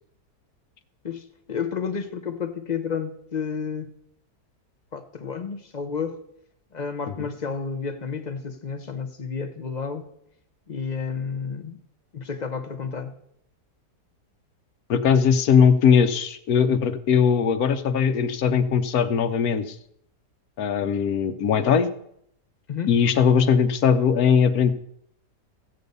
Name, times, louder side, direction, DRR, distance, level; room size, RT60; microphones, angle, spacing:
voice 1, 1.0-3.9 4.9-6.2 6.7-10.1 10.7-11.8 12.1-13.2 22.7-22.9, left 6 dB, 45° left, 0.6 m, -31 dB
voice 2, 14.9-19.7 20.6-21.9 22.9-24.7, left 7 dB, 65° left, 1.2 m, -20 dB
14.5 x 8.3 x 5.4 m
omnidirectional pair, 1.7 m